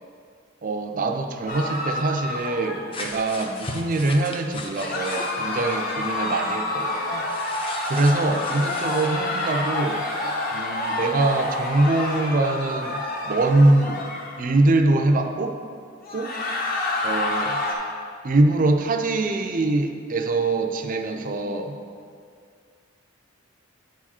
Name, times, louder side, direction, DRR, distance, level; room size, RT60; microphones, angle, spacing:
voice 1, 0.6-7.2 7.9-10.1 10.5-14.1 14.4-15.6 16.1-16.3 17.0-17.6 18.2-21.8, right 2 dB, 40° right, 5 dB, 0.5 m, -23 dB
sound 1, 1.5-3.0 4.8-14.4 16.0-17.7, left 2 dB, 45° left, 1.0 m, -28 dB
sound 2, 2.9-5.4 7.3-9.1, left 2 dB, 25° left, 0.6 m, -36 dB
9.1 x 4.8 x 4.3 m, 2.2 s
head